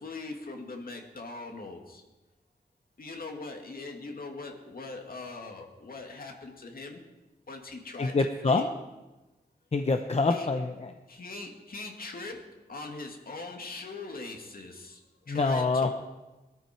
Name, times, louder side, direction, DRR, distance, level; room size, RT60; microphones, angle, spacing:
voice 1, 0.0-2.0 3.0-7.0 7.5-8.7 10.3-10.5 11.1-15.0 15.3-15.9, left 3 dB, 60° left, 2 dB, 2.5 m, -41 dB
voice 2, 8.0-8.6 9.7-10.9 15.3-15.9, left 3 dB, 40° left, 6 dB, 0.9 m, -26 dB
21.5 x 13.5 x 4.6 m, 1.1 s
wide cardioid pair, 100°, 17 cm